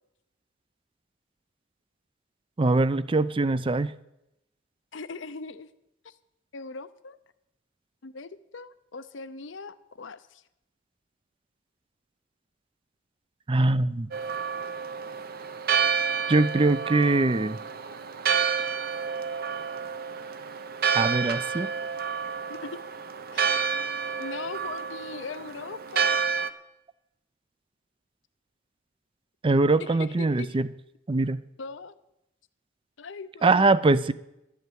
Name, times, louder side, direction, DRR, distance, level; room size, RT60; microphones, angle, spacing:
voice 1, 2.6-3.9 13.5-14.1 16.3-17.6 20.9-21.7 29.4-30.7 31.1-31.4 33.4-34.1, right 2 dB, 25° right, 16 dB, 0.5 m, -22 dB
voice 2, 4.9-5.7 6.0-6.1 6.5-7.2 8.0-10.4 22.5-22.8 23.3-23.4 24.2-26.3 29.9-30.6 31.6-31.9 33.0-33.7, left 4 dB, 70° left, 14 dB, 0.7 m, -40 dB
Church bell, 14.1-26.5, right 6 dB, 50° right, 0.8 m, -29 dB
11.5 x 8.4 x 9.3 m, 0.88 s
head